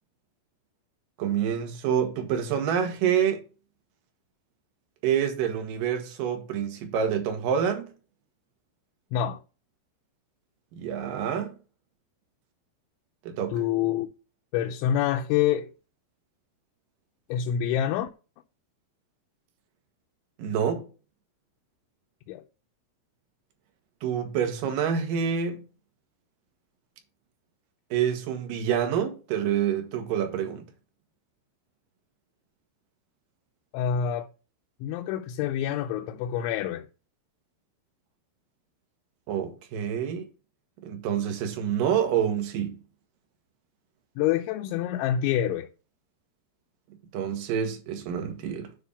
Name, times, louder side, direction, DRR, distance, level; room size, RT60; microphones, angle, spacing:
voice 1, 1.2-3.4 5.0-7.9 10.7-11.5 13.3-13.6 20.4-20.9 24.0-25.6 27.9-30.7 39.3-40.3 40.8-42.8 47.1-48.7, right 8 dB, 60° right, 2.5 m, -27 dB
voice 2, 13.5-14.1 14.5-15.7 17.3-18.1 22.3-22.4 33.7-34.3 34.8-36.9 44.2-45.7, left 10 dB, 85° left, 3.0 m, -26 dB
10.0 x 3.6 x 6.9 m
omnidirectional pair, 5.4 m